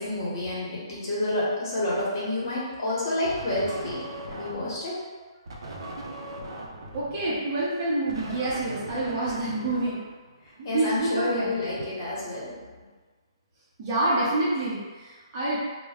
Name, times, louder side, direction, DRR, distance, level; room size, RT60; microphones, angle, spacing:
voice 1, 0.0-5.0 10.6-12.6, left 1 dB, 45° left, -7 dB, 1.0 m, -29 dB
sound 1, 3.2-4.9 5.5-10.6, right 1 dB, 65° right, 0.5 m, -39 dB
voice 2, 6.9-10.0 10.6-11.5 13.8-15.6, right 2 dB, 30° right, -8 dB, 0.7 m, -27 dB
2.2 x 2.2 x 3.4 m, 1.4 s
hypercardioid pair, 170°, 3 cm